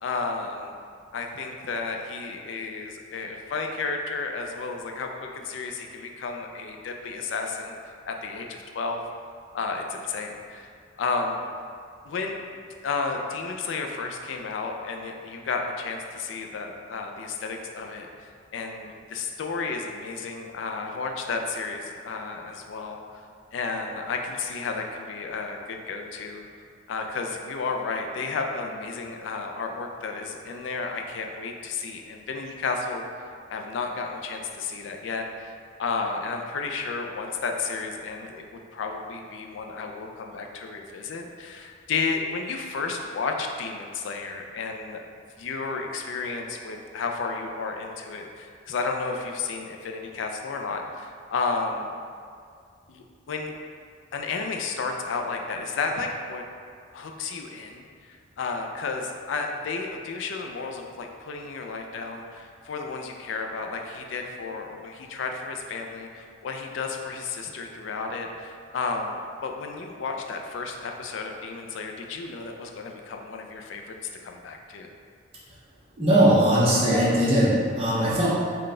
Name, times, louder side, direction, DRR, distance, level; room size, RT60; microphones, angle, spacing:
voice 1, 0.0-0.7 1.1-9.0 9.5-10.7 11.0-11.4 12.0-23.0 23.5-26.4 26.9-33.1 33.5-45.0 45.4-51.9 52.9-53.5 54.1-56.4 56.9-74.9, left 4 dB, 65° left, 3 dB, 0.3 m, -32 dB
voice 2, 76.0-78.3, right 1 dB, 30° right, -7 dB, 0.7 m, -20 dB
3.8 x 2.2 x 3.7 m, 2.2 s
head